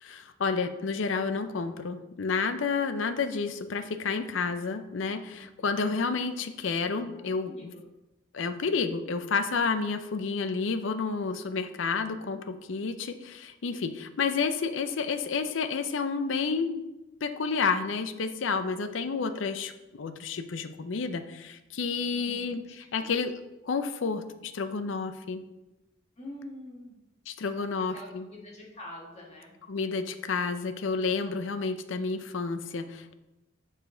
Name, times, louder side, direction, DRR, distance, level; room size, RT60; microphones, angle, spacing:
voice 1, 0.0-7.7 8.3-16.9 17.2-23.3 23.6-25.4 27.3-28.2 29.7-33.1, left 4 dB, 70° left, 10 dB, 0.5 m, -30 dB
voice 2, 5.3-5.9 7.1-7.8 19.0-19.2 22.1-23.1 26.2-26.9 27.4-27.5 27.9-29.5, left 1 dB, 35° left, -3 dB, 1.7 m, -46 dB
7.2 x 4.9 x 3.8 m, 1.0 s
head